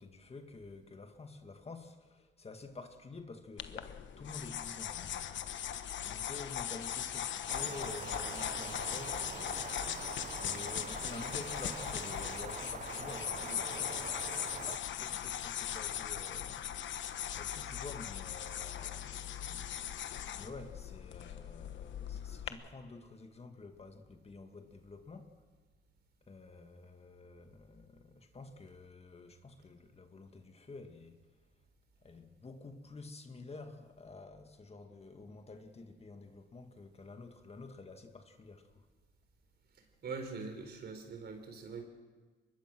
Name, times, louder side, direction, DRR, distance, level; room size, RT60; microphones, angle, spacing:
voice 1, 0.0-5.3 5.9-16.7 17.4-19.9 20.4-25.4 26.3-31.2 32.0-38.9, left 3 dB, 30° left, 1.9 m, -50 dB
sound 1, 3.6-22.5, left 10 dB, 70° left, 1.2 m, -39 dB
sound 2, 7.5-14.8, right 7 dB, 35° right, 0.6 m, -45 dB
voice 2, 40.0-41.8, right 4 dB, 55° right, 4.1 m, -42 dB
24.0 x 21.0 x 6.2 m
cardioid pair, 90°, 20 cm